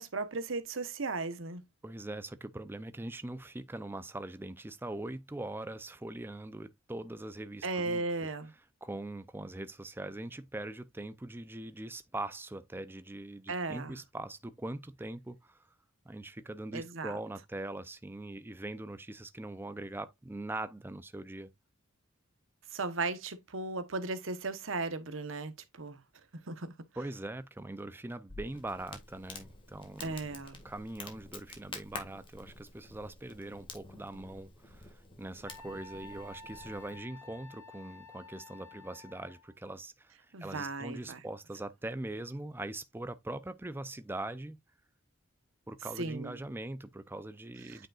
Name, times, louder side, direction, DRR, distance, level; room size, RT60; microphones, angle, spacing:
voice 1, 0.0-1.6 7.6-8.5 13.5-14.0 16.7-17.2 22.7-26.0 26.5-26.7 30.0-30.6 40.3-41.2 46.0-46.4 47.7-47.8, right 3 dB, 70° right, 1.0 m, -36 dB
voice 2, 1.8-8.0 8.8-15.6 16.1-21.5 27.0-30.2 30.6-44.6 45.7-47.9, right 2 dB, 10° right, 0.4 m, -42 dB
Crackle, 28.3-37.0, left 3 dB, 25° left, 1.7 m, -49 dB
Wind instrument woodwind instrument, 35.4-39.5, left 2 dB, 55° left, 4.4 m, -51 dB
8.9 x 5.1 x 2.4 m
head